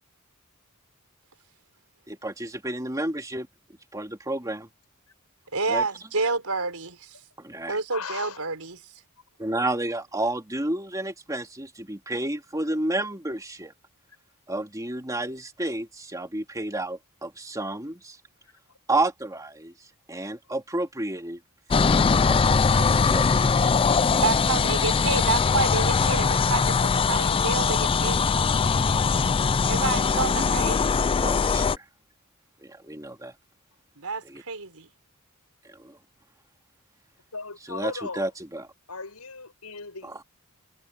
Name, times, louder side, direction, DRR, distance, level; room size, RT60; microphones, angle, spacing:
voice 1, 2.1-3.5 3.9-4.7 5.7-5.8 7.4-7.8 9.4-13.7 14.5-18.2 18.9-19.7 20.1-21.4 21.7-23.7 31.2-31.8 32.6-33.3 34.2-34.4 35.7-36.0 37.7-38.7 40.0-40.1, right 2 dB, 15° right, 2.6 m, -31 dB
voice 2, 5.5-7.2 7.7-8.8 24.2-28.3 29.6-30.8 34.0-34.9, right 4 dB, 75° right, 4.8 m, -29 dB
voice 3, 7.9-8.4 18.4-18.5 37.3-38.3 38.9-40.2, left 4 dB, 90° left, 6.6 m, -37 dB
sound 1, 21.7-31.8, left 5 dB, 25° left, 0.3 m, -21 dB
head